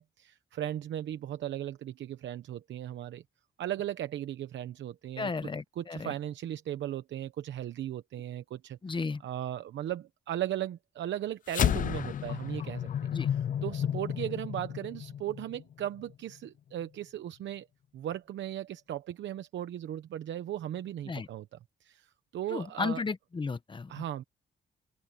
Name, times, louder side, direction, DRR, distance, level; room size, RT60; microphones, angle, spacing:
voice 1, 0.0-3.2 3.6-5.3 5.8-8.8 9.2-12.9 13.3-17.7 17.9-23.0 23.9-24.2, right 12 dB, 80° right, 0.9 m, -37 dB
voice 2, 5.2-6.1 8.8-9.2 13.1-13.3 21.1-21.3 22.5-24.0, left 4 dB, 25° left, 1.0 m, -34 dB
sound 1, 11.5-16.1, left 9 dB, 45° left, 0.4 m, -32 dB
open air
cardioid pair, 110°, 19 cm